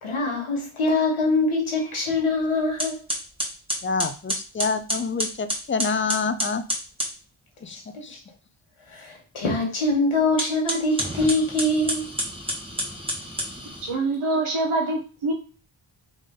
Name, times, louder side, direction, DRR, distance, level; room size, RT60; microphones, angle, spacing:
voice 1, 0.0-3.0 7.7-8.2 8.9-12.0, left 2 dB, 85° left, 1.6 m, -24 dB
sound 1, 2.3-2.4 2.8-7.2 10.3-13.9, equal, 10° right, 1.5 m, -30 dB
voice 2, 3.8-6.6 7.6-7.8 8.0-8.1, left 4 dB, 25° left, 0.4 m, -27 dB
voice 3, 13.8-15.3, right 2 dB, 90° right, 1.4 m, -25 dB
3.7 x 3.5 x 3.8 m
cardioid pair, 50°, 48 cm